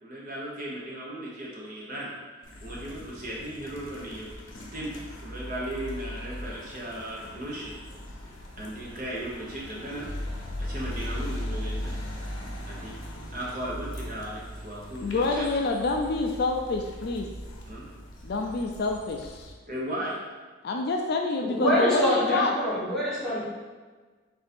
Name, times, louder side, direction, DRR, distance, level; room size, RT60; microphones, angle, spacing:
voice 1, 0.0-2.1 2.4-4.3 4.7-4.9 5.2-7.7 8.2-10.1 10.6-11.9 12.7-13.0 13.3-15.7 17.7-17.8 19.7-20.2, right 1 dB, 40° right, -5 dB, 0.9 m, -36 dB
sound 1, 2.4-19.5, left 1 dB, 70° left, 0.8 m, -39 dB
voice 2, 15.0-17.3 18.2-19.5 20.6-22.5, left 3 dB, 50° left, 2 dB, 0.3 m, -27 dB
voice 3, 21.4-23.4, equal, ahead, -10 dB, 1.2 m, -25 dB
3.9 x 2.7 x 4.2 m, 1.4 s
head